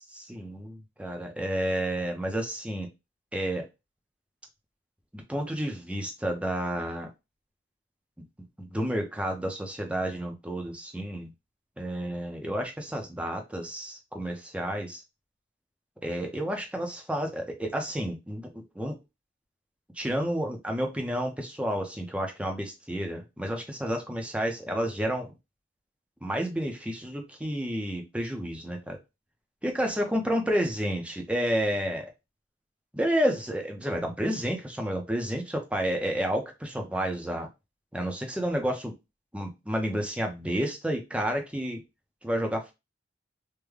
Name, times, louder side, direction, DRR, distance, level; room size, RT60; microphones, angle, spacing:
voice 1, 0.1-2.9 3.3-3.7 5.1-7.1 8.6-11.3 11.8-15.0 16.0-19.0 19.9-25.3 26.2-29.0 29.6-32.1 32.9-37.5 37.9-38.9 39.3-41.8 42.2-42.7, equal, 5° right, 2 dB, 0.5 m, -30 dB
3.5 x 2.1 x 3.2 m, 0.24 s
head